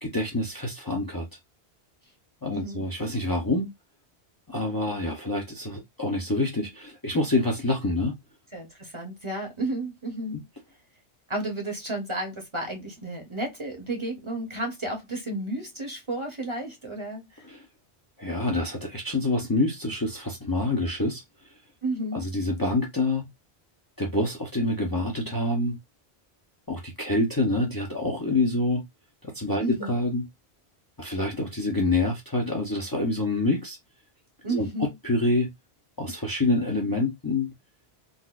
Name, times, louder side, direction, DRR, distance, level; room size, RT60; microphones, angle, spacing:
voice 1, 0.0-1.3 2.4-3.7 4.5-8.1 10.3-10.4 17.4-17.7 18.2-21.2 22.1-23.3 24.0-25.8 26.7-28.8 29.2-30.3 31.0-33.8 34.5-35.5 36.0-37.5, left 2 dB, 25° left, 0.7 m, -26 dB
voice 2, 2.5-2.9 8.5-10.5 11.3-17.4 21.8-22.2 29.6-29.9 34.4-34.9, right 2 dB, 30° right, 0.9 m, -32 dB
4.0 x 2.5 x 2.4 m
omnidirectional pair, 1.1 m